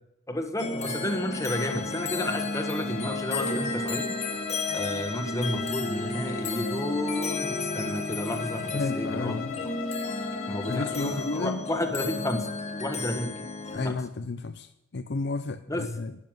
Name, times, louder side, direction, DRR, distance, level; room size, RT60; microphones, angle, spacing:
voice 1, 0.3-4.1 4.7-9.7 10.5-12.5 12.8-13.3 13.7-14.0 15.7-15.8, left 1 dB, 15° left, 1.5 m, -31 dB
sound 1, 0.6-13.9, left 3 dB, 35° left, 1.5 m, -32 dB
Bowed string instrument, 1.3-11.4, left 6 dB, 80° left, 1.6 m, -40 dB
voice 2, 8.7-9.6 10.7-11.7 13.7-16.2, left 3 dB, 60° left, 0.6 m, -32 dB
12.5 x 8.2 x 9.1 m
head